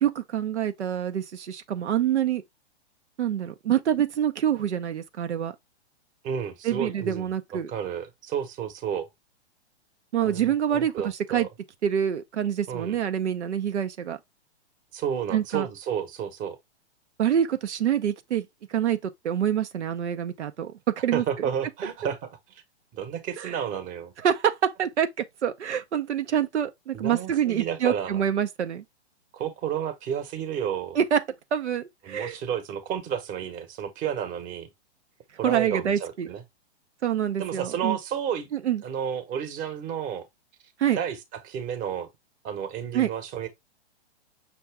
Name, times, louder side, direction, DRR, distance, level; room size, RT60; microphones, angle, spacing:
voice 1, 0.0-2.4 3.2-5.5 6.6-7.7 10.1-11.5 11.8-14.2 15.3-15.7 17.2-20.7 21.0-21.2 23.4-23.6 24.2-28.8 30.9-31.2 31.5-32.4 35.4-36.3 37.0-38.0 38.5-38.8 40.8-41.0 42.9-43.1, right 9 dB, 90° right, 0.6 m, -26 dB
voice 2, 6.2-9.1 10.2-11.5 12.7-13.0 14.9-16.6 21.1-22.2 22.9-24.1 26.9-28.2 29.3-31.0 32.0-34.7 35.4-36.4 37.4-38.5 38.8-40.2 40.9-41.2 41.4-42.1 42.4-43.5, right 8 dB, 25° right, 0.9 m, -31 dB
6.0 x 2.6 x 3.3 m
hypercardioid pair, 130°, 33 cm